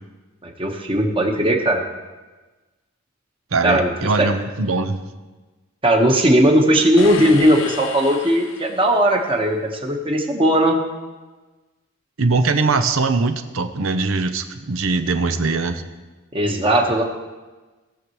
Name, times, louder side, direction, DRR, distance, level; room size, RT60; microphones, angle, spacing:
voice 1, 0.4-1.8 3.6-4.3 5.8-10.8 16.3-17.0, right 1 dB, 25° right, 2 dB, 1.2 m, -18 dB
voice 2, 3.5-5.0 12.2-15.8, right 3 dB, 85° right, 9 dB, 0.7 m, -21 dB
sound 1, 7.0-9.2, left 5 dB, 70° left, 0.8 m, -33 dB
18.5 x 6.7 x 3.1 m, 1.3 s
head